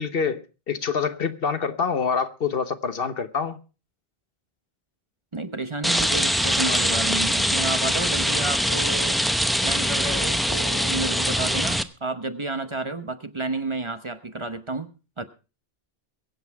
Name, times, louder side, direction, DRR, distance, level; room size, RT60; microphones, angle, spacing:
voice 1, 0.0-3.6, left 6 dB, 65° left, 1.2 m, -26 dB
voice 2, 5.3-9.2 9.6-15.2, right 3 dB, 30° right, 0.9 m, -31 dB
Rain, 5.8-11.8, equal, ahead, 0.6 m, -23 dB
22.5 x 8.2 x 4.6 m
omnidirectional pair, 1.0 m